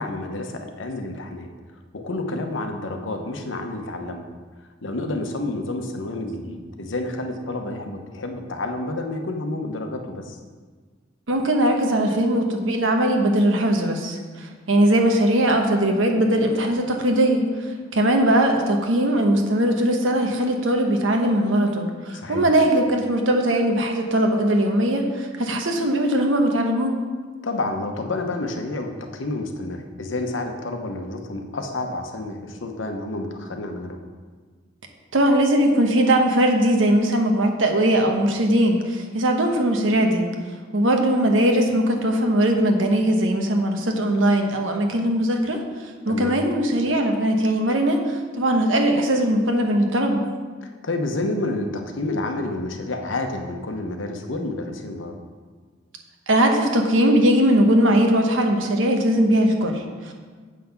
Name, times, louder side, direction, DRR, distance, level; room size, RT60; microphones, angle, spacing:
voice 1, 0.0-1.5 1.9-4.3 4.8-10.4 22.1-22.5 27.4-34.0 46.1-46.4 50.6-55.2, left 2 dB, 75° left, 4 dB, 0.9 m, -29 dB
voice 2, 11.3-27.0 35.1-40.3 40.7-45.6 46.0-50.2 56.3-60.1, right 1 dB, 85° right, 3 dB, 1.1 m, -20 dB
7.5 x 5.9 x 5.7 m, 1.5 s
head